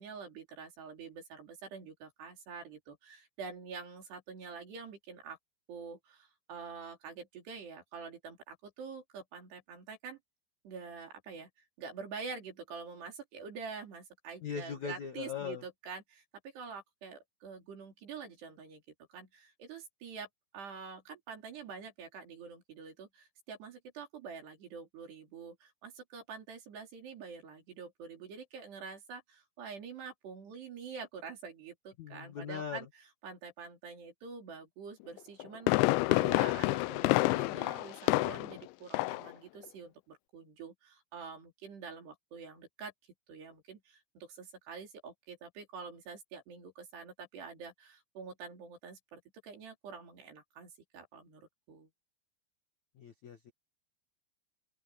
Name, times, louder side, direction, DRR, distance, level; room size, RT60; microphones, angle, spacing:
voice 1, 0.0-5.4 5.7-10.2 10.6-11.5 11.8-18.8 19.1-20.3 20.5-32.9 33.2-42.9 43.3-51.9, right 5 dB, 60° right, 6.1 m, -46 dB
voice 2, 14.4-15.6 32.0-32.8 53.0-53.5, left 7 dB, 60° left, 1.9 m, -40 dB
Fireworks, 35.2-38.6 38.9-39.3 39.6-39.7, left 20 dB, 80° left, 2.8 m, -28 dB
open air
omnidirectional pair, 5.4 m